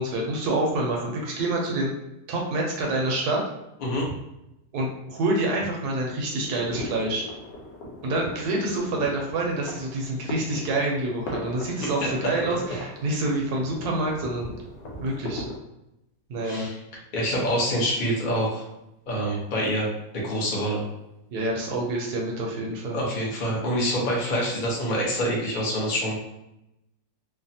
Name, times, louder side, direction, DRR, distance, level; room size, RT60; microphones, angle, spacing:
voice 1, 0.0-1.9 2.3-3.4 4.7-7.2 8.0-14.5 15.0-15.4 16.3-16.7 21.3-23.0, right 2 dB, 70° right, -1 dB, 1.1 m, -27 dB
sound 1, 6.4-15.6, left 1 dB, 90° left, 1.3 m, -39 dB
voice 2, 17.1-18.6 19.1-19.9 20.1-20.8 22.9-26.2, equal, 45° left, -4 dB, 0.6 m, -26 dB
3.2 x 2.0 x 2.6 m, 0.88 s
omnidirectional pair, 1.9 m